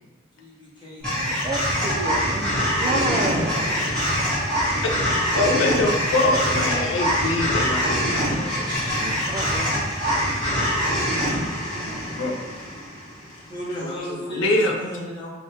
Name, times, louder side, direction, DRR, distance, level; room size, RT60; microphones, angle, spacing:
voice 1, 0.3-1.7 13.5-15.3, equal, 25° left, -7 dB, 0.9 m, -35 dB
sound 1, 1.0-13.3, equal, 5° left, 1.2 m, -24 dB
voice 2, 1.3-2.5 2.8-3.9 9.3-9.9 11.8-12.3, right 1 dB, 25° right, 0 dB, 0.3 m, -30 dB
voice 3, 5.3-9.2 12.1-12.4 13.8-14.7, left 2 dB, 75° left, 1 dB, 0.4 m, -24 dB
3.5 x 2.4 x 2.7 m, 1.2 s
head